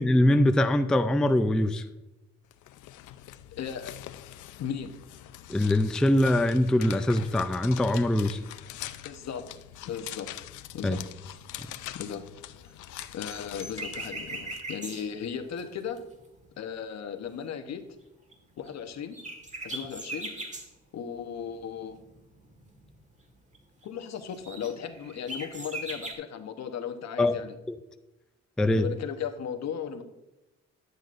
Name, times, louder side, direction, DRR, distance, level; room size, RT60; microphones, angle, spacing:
voice 1, 0.0-1.8 5.5-8.4 10.8-11.0 27.2-27.4 27.7-27.8 28.6-28.9, left 1 dB, ahead, 8 dB, 0.4 m, -23 dB
sound 1, 2.5-14.6, left 13 dB, 75° left, 0.5 m, -44 dB
voice 2, 3.5-4.0 4.6-4.9 9.0-9.5 9.8-10.3 10.7-11.0 11.9-12.2 12.5-16.0 16.6-17.9 18.6-19.2 19.6-20.3 20.9-22.0 23.8-27.6 28.8-30.0, left 8 dB, 60° left, 7 dB, 1.0 m, -36 dB
sound 2, 12.7-16.5 18.3-18.4 18.7-18.8 19.1-20.7 21.3-23.1 23.3-23.6 23.8-23.9 24.2-26.1, right 2 dB, 25° right, 1.6 m, -40 dB
11.0 x 8.0 x 2.5 m, 0.96 s
cardioid pair, 90°, 30 cm